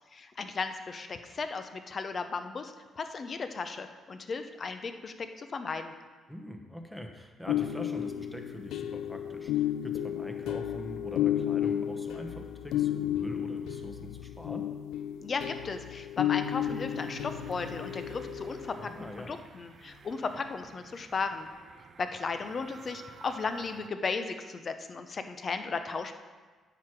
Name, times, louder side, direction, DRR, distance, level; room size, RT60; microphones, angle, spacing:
voice 1, 0.1-5.9 15.2-18.9 19.3-21.5 22.0-26.1, left 4 dB, 40° left, 8 dB, 0.7 m, -35 dB
voice 2, 6.3-14.7 18.8-19.3, equal, 5° left, 4 dB, 1.1 m, -43 dB
sound 1, 7.5-19.1, left 11 dB, 90° left, 0.3 m, -33 dB
sound 2, 16.4-23.9, right 6 dB, 50° right, 0.4 m, -50 dB
9.4 x 6.0 x 4.7 m, 1.4 s
cardioid pair, 90°, 0 cm